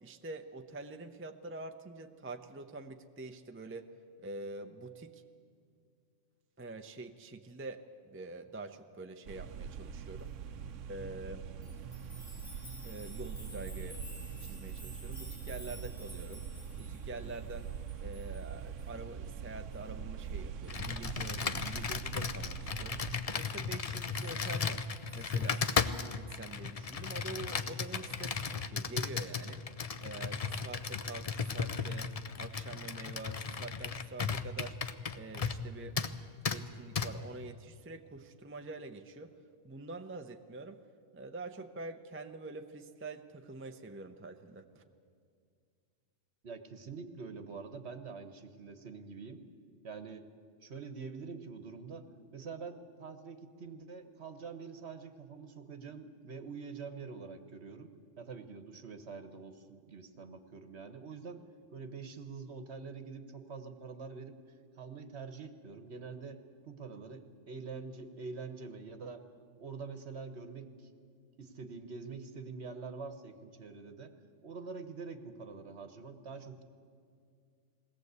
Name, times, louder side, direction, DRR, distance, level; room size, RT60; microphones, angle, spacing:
voice 1, 0.0-3.9 4.2-5.2 6.6-10.3 10.9-11.5 12.8-14.0 14.4-16.5 16.8-17.7 18.0-23.0 23.3-24.8 25.1-25.6 26.0-29.7 30.0-34.8 35.1-36.0 36.5-39.3 39.6-40.8 41.1-44.8, right 2 dB, 15° right, 6 dB, 0.6 m, -46 dB
sound 1, 9.3-23.2, right 7 dB, 75° right, 1.0 m, -43 dB
sound 2, 11.6-18.9 19.2-19.3 19.7-19.8 20.2-20.3 20.6-20.7 21.1-21.6 24.1-26.1, left 1 dB, 85° left, 8.0 m, -54 dB
Computer keyboard, 20.7-35.7 36.0-36.1 36.4-36.6 37.0-37.1, left 5 dB, 40° left, 0.6 m, -35 dB
voice 2, 46.4-49.4 49.8-50.3 50.6-61.4 61.7-64.4 64.8-69.2 69.6-70.9 71.4-74.1 74.4-76.6, right 4 dB, 55° right, 9 dB, 1.4 m, -45 dB
21.5 x 17.5 x 8.2 m, 2.3 s
omnidirectional pair, 1.4 m